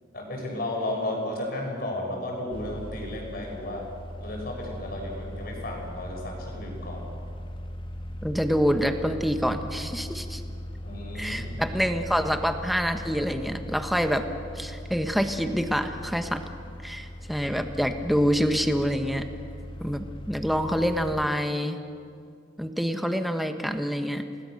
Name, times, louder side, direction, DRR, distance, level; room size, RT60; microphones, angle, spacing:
voice 1, 0.1-3.8 4.2-7.1 10.8-11.8, left 1 dB, 55° left, 0 dB, 6.3 m, -33 dB
sound 1, 2.5-21.3, left 1 dB, 25° left, 1.4 m, -39 dB
voice 2, 8.2-10.4 11.2-14.2 14.5-16.4 16.8-19.3 19.8-21.8 22.6-24.3, equal, ahead, 6 dB, 1.2 m, -26 dB
29.5 x 19.0 x 6.6 m, 2.3 s
head